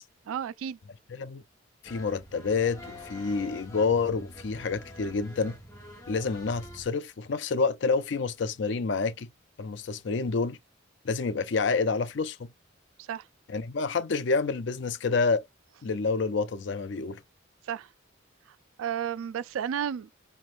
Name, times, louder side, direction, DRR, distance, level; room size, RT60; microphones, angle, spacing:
voice 1, 0.3-0.8 13.0-13.3 17.6-17.9 18.8-20.1, right 9 dB, 85° right, 0.3 m, -32 dB
voice 2, 1.1-1.4 1.8-5.5 6.1-9.3 9.6-10.6 11.0-12.5 13.5-15.4 15.8-17.2, left 4 dB, 60° left, 0.5 m, -28 dB
street accordeonist, 1.8-6.9, left 1 dB, 15° left, 1.0 m, -46 dB
4.3 x 3.1 x 2.5 m
head